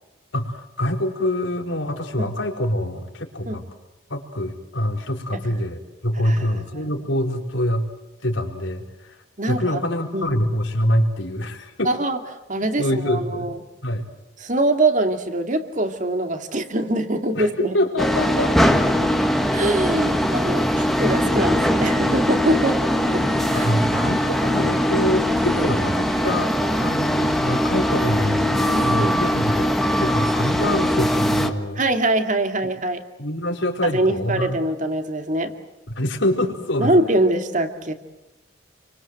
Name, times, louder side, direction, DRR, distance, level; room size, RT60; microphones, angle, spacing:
voice 1, 0.3-3.6 4.1-7.9 8.2-11.9 12.8-13.5 13.8-14.1 17.3-18.5 19.0-19.1 23.5-26.5 26.8-31.8 33.2-34.6 35.9-36.9, left 1 dB, 90° left, 3 dB, 4.3 m, -25 dB
voice 2, 6.2-6.9 9.4-9.8 10.1-10.4 11.8-12.2 12.5-13.6 14.4-17.8 19.5-22.8 23.1-23.2 23.5-23.7 25.5-25.8 28.7-29.2 31.8-33.0 33.9-35.5 36.8-37.9, right 1 dB, 40° right, 6 dB, 2.4 m, -23 dB
sound 1, 18.0-31.5, equal, ahead, 1.6 m, -21 dB
29.5 x 24.0 x 7.8 m, 1.0 s
head